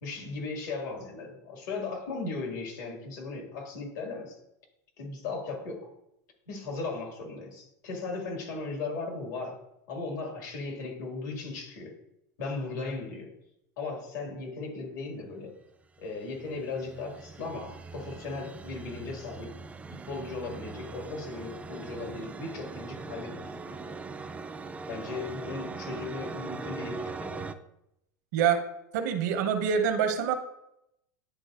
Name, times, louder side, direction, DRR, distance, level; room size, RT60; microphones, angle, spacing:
voice 1, 0.0-4.4 5.0-5.9 6.5-9.6 9.9-11.9 12.4-13.3 13.8-15.5 16.0-19.6 20.1-24.0 24.9-27.4, left 3 dB, 75° left, 1 dB, 1.9 m, -37 dB
sound 1, 16.0-27.5, right 4 dB, 15° right, 0.4 m, -41 dB
voice 2, 28.3-28.7 28.9-30.3, right 7 dB, 70° right, 7 dB, 0.9 m, -25 dB
10.0 x 3.9 x 2.5 m, 0.82 s
hypercardioid pair, 115°, 10 cm